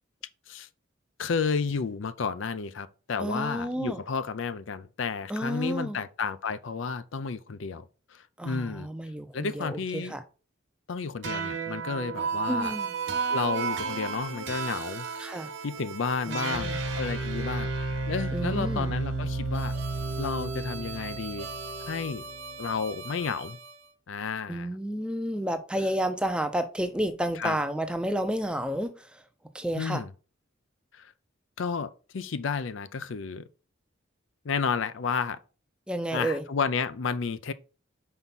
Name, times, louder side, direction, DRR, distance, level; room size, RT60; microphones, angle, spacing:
voice 1, 1.2-7.8 8.1-8.9 9.3-10.1 10.9-12.7 13.3-15.1 15.6-19.7 20.2-21.5 21.9-22.2 22.6-23.6 24.1-24.7 27.4-27.6 29.8-30.1 30.9-31.1 31.6-33.4 34.4-35.4 36.1-37.5, left 5 dB, 70° left, 0.5 m, -31 dB
voice 2, 3.2-4.0 5.3-6.0 8.4-10.2 12.5-12.9 15.2-15.5 16.3-16.8 18.3-18.9 24.5-29.2 29.5-30.0 35.9-36.4, right 1 dB, 5° right, 0.5 m, -31 dB
sound 1, 11.2-23.7, right 4 dB, 65° right, 1.2 m, -33 dB
5.6 x 4.6 x 4.0 m
head